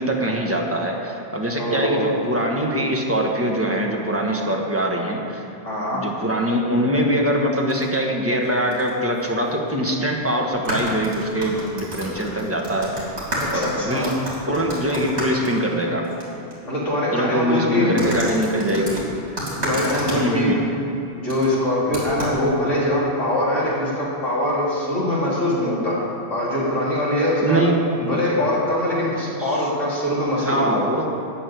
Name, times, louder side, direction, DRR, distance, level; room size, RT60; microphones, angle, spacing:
voice 1, 0.0-5.4 5.9-12.9 13.5-14.1 14.5-16.0 17.1-19.1 20.1-20.6 27.4-27.7 29.4-29.6 30.4-31.1, right 1 dB, 10° right, 0 dB, 1.3 m, -23 dB
voice 2, 1.6-2.1 5.6-6.0 13.4-14.1 16.6-17.9 19.6-20.5 21.1-26.0 26.3-27.6 28.0-30.8, left 1 dB, 80° left, -7 dB, 3.6 m, -22 dB
sound 1, 7.7-8.0 8.7-8.9 9.2-9.3 10.5-16.2 16.5-16.6 18.0-20.2 21.3-21.5 21.9-22.4, right 1 dB, 65° right, 3.8 m, -30 dB
11.5 x 6.6 x 9.3 m, 2.8 s
omnidirectional pair, 1.2 m